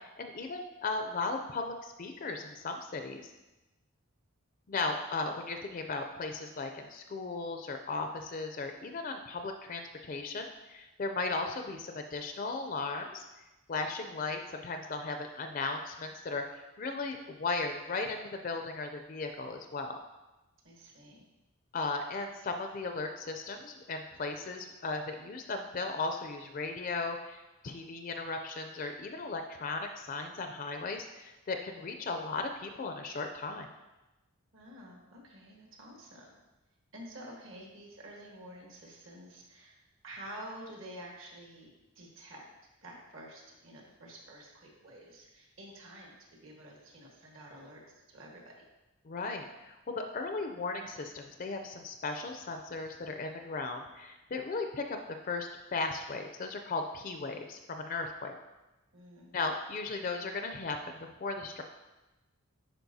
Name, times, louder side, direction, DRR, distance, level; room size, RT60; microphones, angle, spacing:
voice 1, 0.0-3.3 4.7-13.2 13.7-20.0 21.7-33.7 49.0-55.0 55.3-58.4 59.3-61.6, left 3 dB, 40° left, 5 dB, 0.4 m, -36 dB
voice 2, 20.6-21.2 34.5-36.3 36.9-41.7 41.9-42.4 42.8-47.8 48.1-48.6 58.9-59.3, right 1 dB, 65° right, -1 dB, 1.4 m, -49 dB
10.5 x 4.3 x 2.7 m, 1.1 s
head